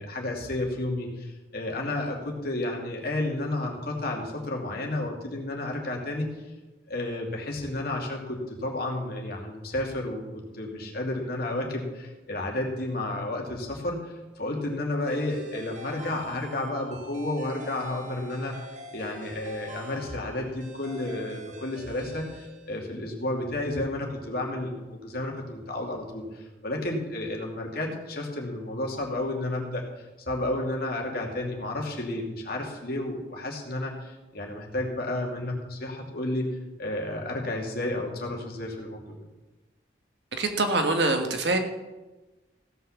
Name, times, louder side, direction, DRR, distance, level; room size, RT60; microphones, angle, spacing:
voice 1, 0.0-6.3 6.9-39.2, left 1 dB, 60° left, 0 dB, 2.5 m, -32 dB
sound 1, 15.1-23.2, left 1 dB, 45° right, 1.8 m, -45 dB
voice 2, 40.3-41.6, right 2 dB, 70° right, 5 dB, 1.5 m, -24 dB
16.0 x 5.8 x 7.1 m, 1.1 s
head